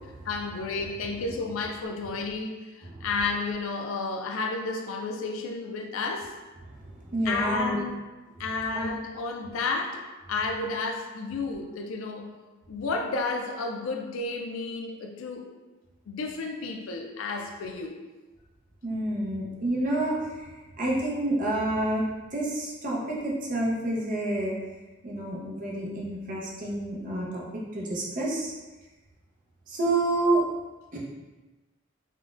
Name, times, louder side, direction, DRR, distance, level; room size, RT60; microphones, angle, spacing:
voice 1, 0.3-6.3 7.2-7.9 8.4-10.0 10.3-12.3 12.7-15.5 16.1-18.0, left 3 dB, 90° left, 3 dB, 0.4 m, -31 dB
voice 2, 7.1-7.8 8.7-8.9 18.8-20.2 20.8-22.0 22.3-24.5 25.0-27.4 27.7-28.5 29.7-30.4 30.9-31.0, right 1 dB, 40° right, -4 dB, 0.6 m, -28 dB
3.7 x 2.2 x 2.4 m, 1.2 s
head